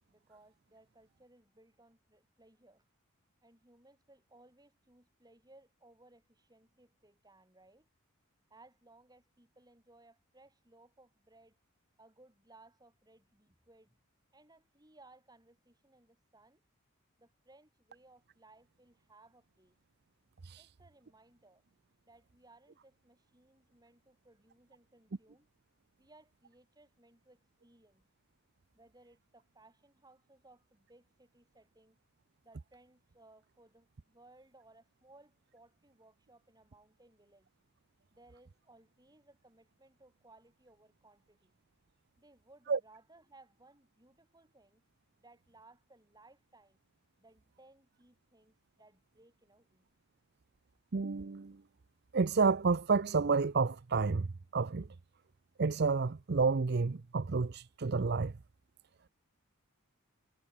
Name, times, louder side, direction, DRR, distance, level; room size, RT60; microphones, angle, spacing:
voice 1, 0.1-2.9 3.4-7.9 8.5-11.6 12.0-14.0 14.3-16.6 17.2-19.8 20.6-21.6 22.1-25.5 26.0-28.1 28.7-32.0 32.4-37.5 38.1-41.6 42.2-44.8 45.2-46.8 47.2-49.9, right 2 dB, 15° right, 5.1 m, -63 dB
voice 2, 50.9-51.6 52.1-54.3 54.5-54.9 55.6-58.3, right 4 dB, 45° right, 0.6 m, -30 dB
head